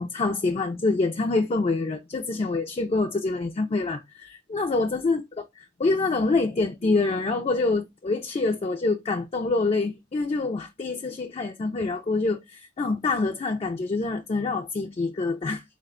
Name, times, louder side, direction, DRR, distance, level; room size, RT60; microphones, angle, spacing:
voice 1, 0.0-5.2 5.8-15.6, left 3 dB, 35° left, 0.3 m, -26 dB
4.0 x 2.2 x 3.5 m
head